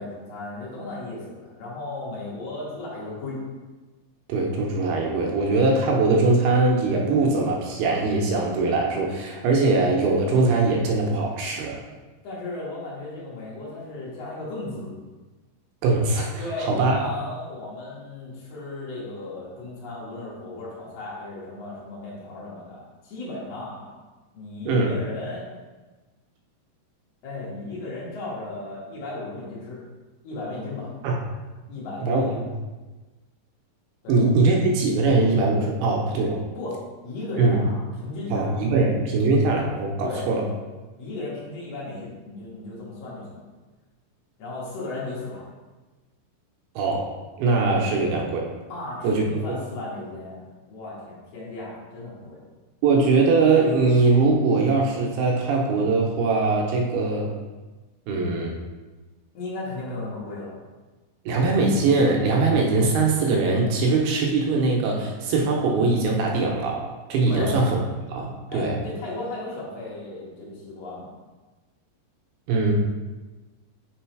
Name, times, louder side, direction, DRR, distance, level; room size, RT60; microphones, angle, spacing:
voice 1, 0.0-3.4 12.2-14.9 16.4-24.0 24.3-25.5 27.2-29.8 30.2-30.9 31.7-32.4 34.0-34.2 36.5-38.6 40.0-40.3 41.0-43.4 44.4-45.5 48.7-52.4 59.3-60.6 67.3-67.6 68.5-71.2, left 2 dB, 50° left, -6 dB, 2.0 m, -35 dB
voice 2, 4.3-11.8 15.8-17.0 24.7-25.0 31.0-31.2 32.0-32.5 34.1-36.4 37.4-37.6 38.3-40.5 46.8-47.1 47.4-48.5 49.0-49.6 52.8-57.3 58.1-58.6 61.3-67.8 68.1-68.8 72.5-72.7, right 3 dB, 80° right, 0 dB, 2.5 m, -21 dB
6.1 x 3.8 x 4.5 m, 1.2 s
omnidirectional pair, 5.0 m